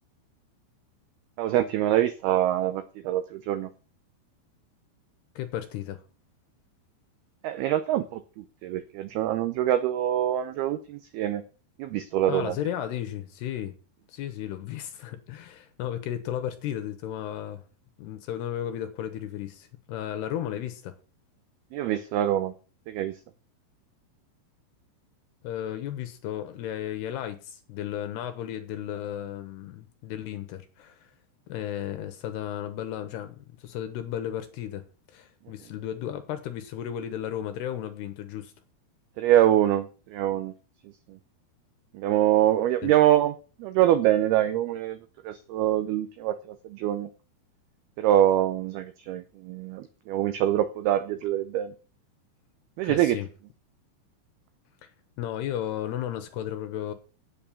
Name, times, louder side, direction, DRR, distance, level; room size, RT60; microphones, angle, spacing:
voice 1, 1.4-3.7 7.4-11.4 11.8-12.5 21.7-22.5 22.9-23.1 39.2-40.5 41.1-41.2 41.9-43.3 43.6-45.0 45.2-47.1 48.0-51.7 52.8-53.2, right 12 dB, 85° right, 2.2 m, -24 dB
voice 2, 5.4-6.0 12.3-13.8 14.1-17.6 18.0-20.9 25.4-31.1 31.5-38.5 42.8-42.9 52.8-53.3 54.8-54.9 55.2-56.9, left 11 dB, 75° left, 2.7 m, -34 dB
8.7 x 8.1 x 7.1 m
omnidirectional pair, 5.4 m